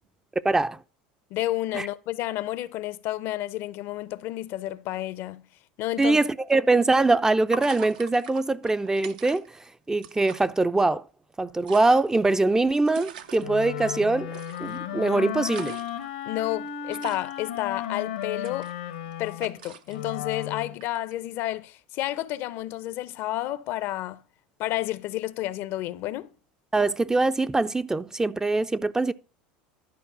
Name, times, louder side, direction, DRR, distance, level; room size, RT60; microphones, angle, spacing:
voice 1, 0.4-0.8 1.7-1.9 6.0-9.5 9.9-11.1 11.4-14.3 14.6-15.7 26.7-29.1, right 2 dB, 15° right, 0.4 m, -23 dB
voice 2, 1.3-5.5 5.8-6.2 16.3-18.7 19.2-24.2 24.6-26.3, left 15 dB, 60° left, 0.6 m, -31 dB
sound 1, 6.5-6.6 7.5-9.7 9.9-10.5 11.4-13.4 14.3-14.8 15.2-16.1 16.9-17.4 18.2-19.1 19.4-20.1 20.8-21.1, right 8 dB, 80° right, 0.7 m, -41 dB
Wind instrument woodwind instrument, 13.4-20.7, left 10 dB, 85° left, 1.0 m, -34 dB
11.5 x 4.7 x 5.9 m
hypercardioid pair, 80°, 5 cm